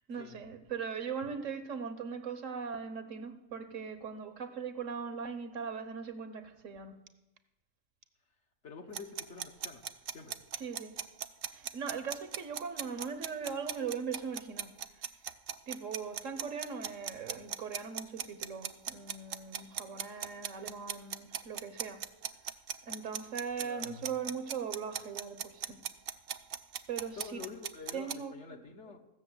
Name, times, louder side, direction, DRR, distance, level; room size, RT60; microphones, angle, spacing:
voice 1, 0.1-7.0 10.6-11.0 11.5-14.7 15.7-22.0 22.8-25.8 26.9-27.4 27.9-28.3, right 6 dB, 75° right, 10 dB, 1.5 m, -40 dB
voice 2, 8.6-9.8 10.1-10.4 23.6-24.1 27.2-29.0, left 5 dB, 60° left, 4 dB, 1.7 m, -47 dB
sound 1, 8.9-28.1, right 8 dB, 55° right, 0.7 m, -38 dB
16.0 x 6.8 x 8.0 m, 0.98 s
omnidirectional pair, 1.4 m